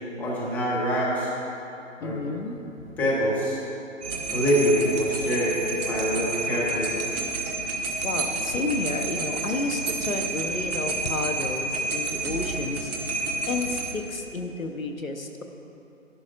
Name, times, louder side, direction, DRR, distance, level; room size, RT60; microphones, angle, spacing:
voice 1, 0.2-1.3 2.0-2.2 3.0-3.6 4.3-7.0, equal, 5° left, -7 dB, 1.0 m, -25 dB
voice 2, 2.0-2.9 8.0-15.4, left 3 dB, 90° left, 5 dB, 1.1 m, -31 dB
sound 1, 4.0-13.9, right 2 dB, 30° right, 1.0 m, -30 dB
13.5 x 11.5 x 2.6 m, 2.9 s
figure-of-eight pair, 145°, 40 cm